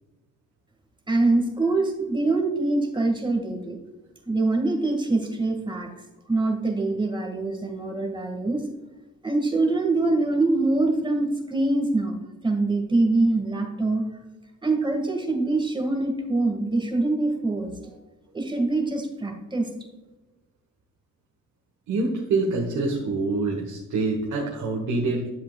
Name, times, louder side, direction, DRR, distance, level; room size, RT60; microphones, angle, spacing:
voice 1, 1.1-3.8 4.3-5.9 6.3-8.6 9.2-12.2 12.4-14.0 14.6-17.7 18.3-19.7, right 2 dB, 15° right, 2 dB, 1.9 m, -24 dB
voice 2, 21.9-25.3, right 3 dB, 70° right, 0 dB, 1.4 m, -26 dB
10.5 x 7.7 x 2.4 m, 1.1 s
cardioid pair, 90°, 30 cm